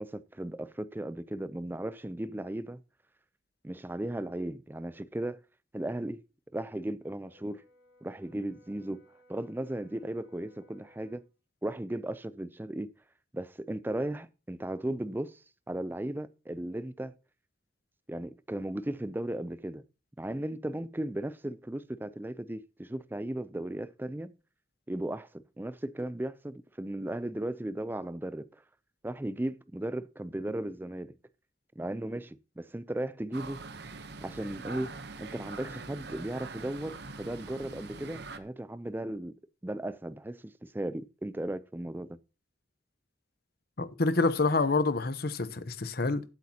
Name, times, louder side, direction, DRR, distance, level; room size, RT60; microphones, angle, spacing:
voice 1, 0.0-2.8 3.6-5.4 5.7-6.2 6.5-7.6 8.0-9.0 9.3-11.2 11.6-12.9 13.3-15.4 15.7-17.1 18.1-19.8 20.2-24.3 24.9-28.5 29.0-31.1 31.8-33.6 34.2-34.9 35.2-39.3 39.6-42.2, right 1 dB, 10° right, 0.4 m, -36 dB
Brass instrument, 7.0-11.3, equal, 70° left, 6.8 m, -62 dB
sound 1, 33.3-38.4, right 3 dB, 60° right, 0.9 m, -43 dB
voice 2, 43.8-46.2, left 3 dB, 55° left, 0.9 m, -27 dB
14.5 x 8.3 x 2.8 m
head